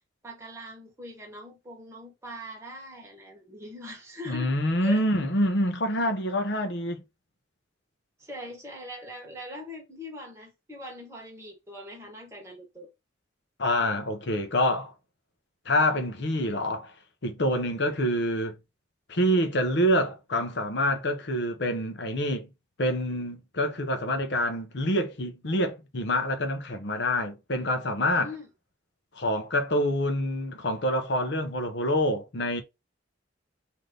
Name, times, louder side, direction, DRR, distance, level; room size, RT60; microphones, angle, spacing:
voice 1, 0.2-4.5 4.8-5.0 8.2-12.9 28.1-28.5, left 1 dB, 15° right, 1.2 m, -42 dB
voice 2, 4.3-7.0 13.6-14.9 15.7-16.9 17.2-18.6 19.1-22.5 22.8-28.3 29.1-32.6, equal, 60° left, 0.8 m, -26 dB
3.3 x 2.8 x 3.8 m
head